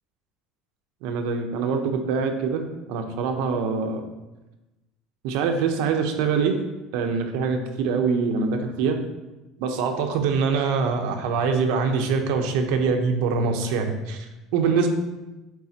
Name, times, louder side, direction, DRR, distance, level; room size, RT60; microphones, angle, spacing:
voice 1, 1.0-4.0 5.2-6.6 6.9-9.0 9.6-14.3 14.5-14.9, right 5 dB, 70° right, 4 dB, 0.8 m, -24 dB
9.3 x 4.0 x 2.9 m, 1.1 s
cardioid pair, 175°, 0 cm